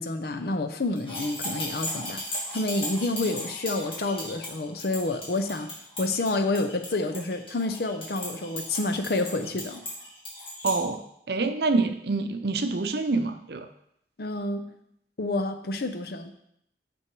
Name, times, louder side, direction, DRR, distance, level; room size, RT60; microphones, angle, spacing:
voice 1, 0.0-2.2 2.5-5.7 6.0-9.8 14.2-14.7 15.2-16.3, left 2 dB, 60° left, 7 dB, 0.7 m, -29 dB
sound 1, 1.0-10.8, left 1 dB, 30° left, 2.5 m, -36 dB
voice 2, 10.6-11.0 11.3-13.7, right 3 dB, 60° right, 8 dB, 0.6 m, -26 dB
6.2 x 5.9 x 4.6 m, 0.74 s
head